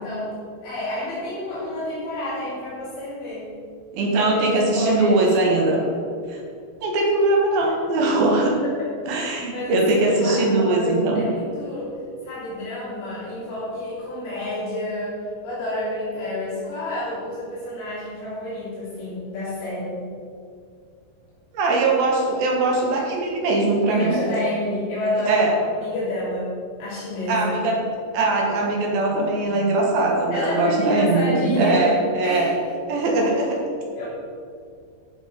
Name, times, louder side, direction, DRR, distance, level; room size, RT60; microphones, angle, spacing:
voice 1, 0.0-3.5 4.1-5.9 8.6-8.9 9.5-11.9 12.2-20.1 23.9-25.4 25.8-27.7 30.3-32.5 34.0-34.1, left 1 dB, 70° left, -10 dB, 5.4 m, -29 dB
voice 2, 3.9-5.8 6.3-6.4 6.8-8.6 9.1-11.2 21.5-24.2 25.2-25.6 27.3-27.9 28.1-32.5 32.9-33.6, right 2 dB, 65° right, 0 dB, 2.9 m, -21 dB
13.5 x 7.2 x 5.2 m, 2.3 s
omnidirectional pair, 5.3 m